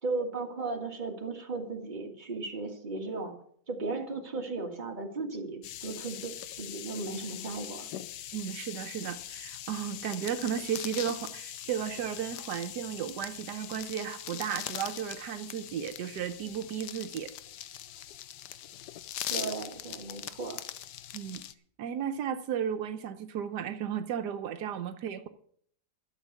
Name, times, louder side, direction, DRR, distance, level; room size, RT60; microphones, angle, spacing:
voice 1, 0.0-3.3 3.7-7.9 19.3-20.6, right 3 dB, 30° right, 1.8 m, -36 dB
sound 1, 5.6-21.5, left 11 dB, 90° left, 1.3 m, -41 dB
voice 2, 8.3-17.3 21.1-21.4 21.8-25.3, right 9 dB, 85° right, 1.4 m, -34 dB
12.5 x 7.1 x 8.2 m
omnidirectional pair, 1.8 m